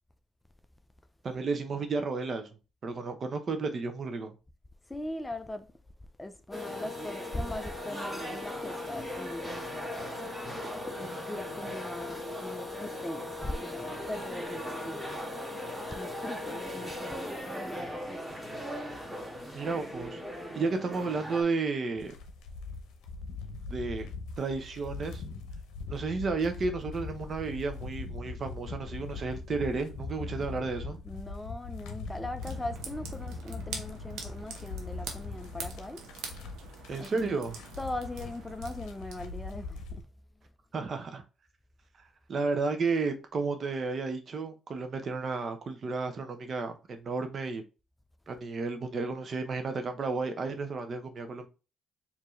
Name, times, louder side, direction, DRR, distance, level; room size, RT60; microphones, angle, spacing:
voice 1, 1.2-2.5 2.8-4.3 19.5-20.2 20.5-22.1 23.7-24.1 24.4-25.2 25.9-31.0 36.9-37.6 40.7-41.2 42.3-47.6 48.3-51.5, right 4 dB, 50° right, 0.8 m, -32 dB
voice 2, 4.9-5.7 6.2-9.6 9.9-10.2 11.0-15.1 15.9-18.2 31.0-36.1 37.0-37.2 37.8-40.0, left 1 dB, 15° left, 0.5 m, -40 dB
sound 1, 6.5-21.4, left 1 dB, 10° right, 1.7 m, -38 dB
sound 2, 22.0-40.0, left 4 dB, 90° left, 0.7 m, -41 dB
sound 3, 32.4-39.5, right 5 dB, 85° right, 1.0 m, -45 dB
4.5 x 2.8 x 3.1 m
cardioid pair, 90°, 0 cm